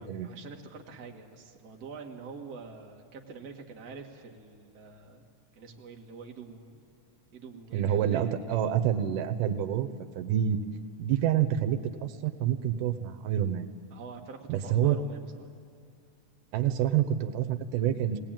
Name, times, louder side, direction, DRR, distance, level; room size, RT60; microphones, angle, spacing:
voice 1, 0.0-5.2 5.5-6.8 7.3-8.5 13.9-15.5, right 5 dB, 35° right, 1 dB, 1.6 m, -46 dB
voice 2, 7.7-9.9 10.2-10.6 11.0-13.7 14.5-15.0 16.5-18.2, right 10 dB, 80° right, 8 dB, 2.4 m, -27 dB
21.0 x 18.5 x 9.0 m, 2.4 s
omnidirectional pair, 3.7 m